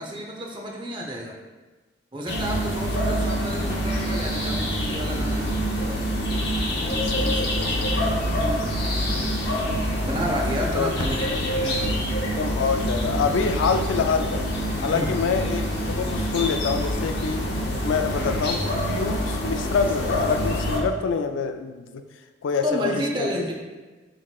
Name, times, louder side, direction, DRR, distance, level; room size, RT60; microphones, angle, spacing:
voice 1, 0.0-1.4 2.1-5.5 7.3-7.6 8.4-8.6 10.1-12.0 14.9-15.1 22.6-23.5, equal, 25° right, 0 dB, 0.6 m, -30 dB
sound 1, 2.3-20.8, equal, 60° left, 0.7 m, -26 dB
voice 2, 7.0-7.6 10.7-10.9 12.4-14.4 14.8-15.7 15.9-17.5 17.8-22.0 22.4-23.4, left 5 dB, 85° left, 7 dB, 0.4 m, -26 dB
5.7 x 3.6 x 2.3 m, 1.2 s
head